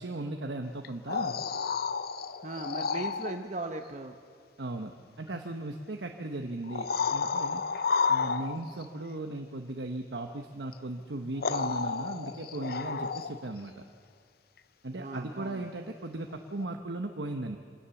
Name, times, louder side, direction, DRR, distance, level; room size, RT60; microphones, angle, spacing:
voice 1, 0.0-1.4 4.6-4.9 5.2-7.6 8.1-13.8 14.8-17.6, right 2 dB, 90° right, 4 dB, 1.1 m, -37 dB
sound 1, 0.8-3.4 5.3-5.4 6.6-8.8 10.7-10.8 11.4-13.5 16.6-16.7, left 5 dB, 60° left, 0.6 m, -31 dB
voice 2, 2.4-4.2 14.9-15.7, right 2 dB, 40° right, 5 dB, 0.9 m, -38 dB
24.5 x 17.0 x 7.1 m, 2.1 s
head